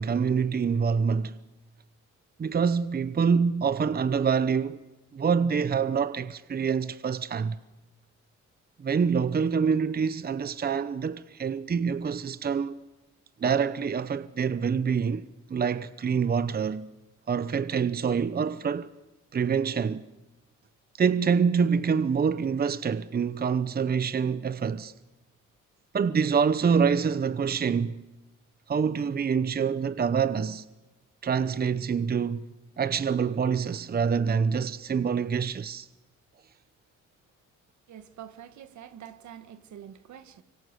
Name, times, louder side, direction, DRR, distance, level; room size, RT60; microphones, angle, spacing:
voice 1, 0.0-1.3 2.4-4.8 5.1-7.6 8.8-12.7 13.4-15.2 15.5-16.9 17.3-18.9 19.3-20.0 21.0-24.9 25.9-28.0 28.7-30.6 31.2-32.5 32.8-35.9, right 6 dB, 30° right, 0.8 m, -26 dB
voice 2, 37.9-40.4, right 9 dB, 70° right, 1.7 m, -46 dB
25.5 x 24.5 x 8.2 m
cardioid pair, 90°, 30 cm